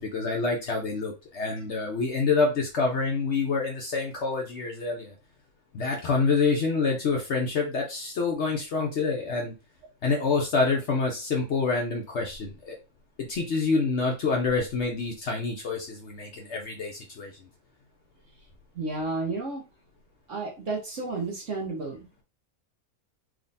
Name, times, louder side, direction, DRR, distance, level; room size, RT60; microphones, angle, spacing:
voice 1, 0.0-5.1 5.7-9.5 10.0-12.8 13.2-17.3, left 4 dB, 55° left, 1 dB, 1.0 m, -27 dB
voice 2, 18.7-19.6 20.3-22.2, right 3 dB, 60° right, -1 dB, 1.2 m, -32 dB
3.6 x 3.3 x 2.6 m, 0.28 s
omnidirectional pair, 1.5 m